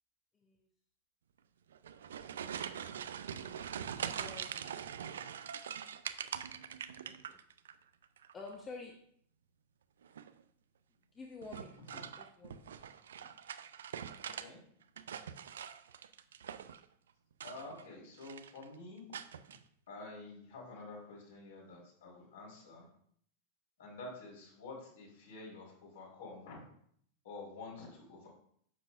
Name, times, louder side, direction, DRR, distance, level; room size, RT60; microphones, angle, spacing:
sound 1, 1.7-7.7 8.0-8.6 10.0-10.4 11.4-14.5 14.8-16.8 17.3-17.9 18.2-18.6 19.1-19.6, right 8 dB, 65° right, 0.4 m, -43 dB
voice 1, 4.1-4.8 7.1-7.4 8.3-8.9 11.1-11.8 12.4-12.6, left 3 dB, 20° left, 1 dB, 1.0 m, -48 dB
voice 2, 14.2-14.6 17.4-19.2 19.9-22.9 23.8-26.6 27.2-28.3, left 3 dB, 60° left, -4 dB, 3.8 m, -49 dB
10.5 x 7.2 x 2.5 m, 0.64 s
figure-of-eight pair, 90°, 0 cm